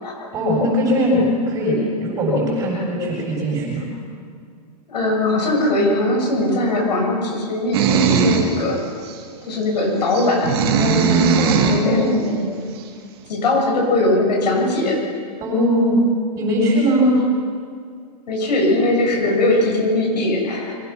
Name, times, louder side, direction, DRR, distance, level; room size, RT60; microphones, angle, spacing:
voice 1, 0.3-3.8 11.4-12.5 15.4-16.0 16.3-17.2, equal, 15° right, -3 dB, 7.4 m, -20 dB
voice 2, 4.9-8.8 9.5-12.2 13.3-15.0 18.3-20.7, left 1 dB, 85° left, 0 dB, 6.9 m, -20 dB
sound 1, 7.7-8.5 9.1-9.2 10.1-11.9, right 6 dB, 40° right, 2.0 m, -18 dB
24.5 x 17.5 x 6.1 m, 2.2 s
supercardioid pair, 175°, 21 cm